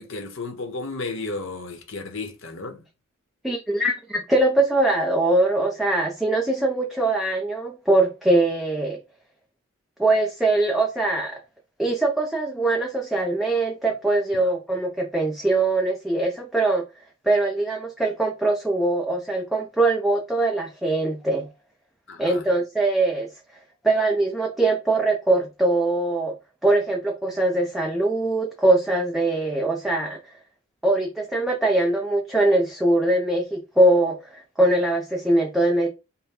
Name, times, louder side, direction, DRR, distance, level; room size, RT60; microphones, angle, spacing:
voice 1, 0.0-2.8 22.1-22.4, left 3 dB, 60° left, 1.0 m, -33 dB
voice 2, 3.4-9.0 10.0-11.4 11.8-16.8 17.3-21.5 22.2-23.3 23.8-26.4 26.6-30.2 30.8-35.9, right 2 dB, ahead, 0.5 m, -22 dB
5.5 x 2.2 x 4.2 m
head